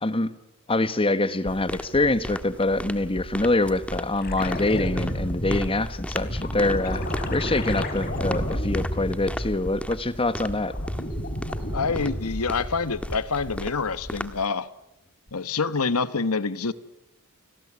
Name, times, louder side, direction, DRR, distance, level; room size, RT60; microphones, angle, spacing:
voice 1, 0.0-0.3 0.7-7.0 7.3-10.7, left 2 dB, 25° left, 1.4 m, -25 dB
sound 1, 1.5-14.4, equal, 5° left, 1.6 m, -36 dB
sound 2, 4.2-10.0 10.3-12.9 15.3-15.4, equal, 45° left, 5.0 m, -31 dB
voice 2, 11.7-14.7 15.3-16.7, left 4 dB, 85° left, 1.3 m, -26 dB
29.5 x 20.0 x 9.7 m
head